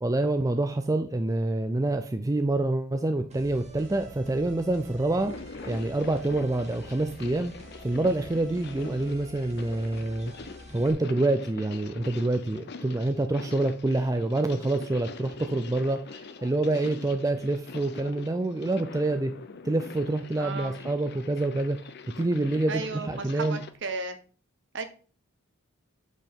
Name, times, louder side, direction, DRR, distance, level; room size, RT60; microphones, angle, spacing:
voice 1, 0.0-5.3 5.6-7.5 7.8-10.3 10.7-19.3 19.6-21.8 22.2-23.6, right 2 dB, 15° right, 8 dB, 0.4 m, -27 dB
sound 1, 3.3-10.9, equal, 30° right, 1.3 m, -47 dB
sound 2, 5.2-23.8, left 4 dB, 50° left, 0.6 m, -44 dB
voice 2, 20.4-20.8 22.7-24.2 24.7-24.8, right 3 dB, 60° right, 8 dB, 1.0 m, -34 dB
8.0 x 4.5 x 3.6 m, 0.38 s
head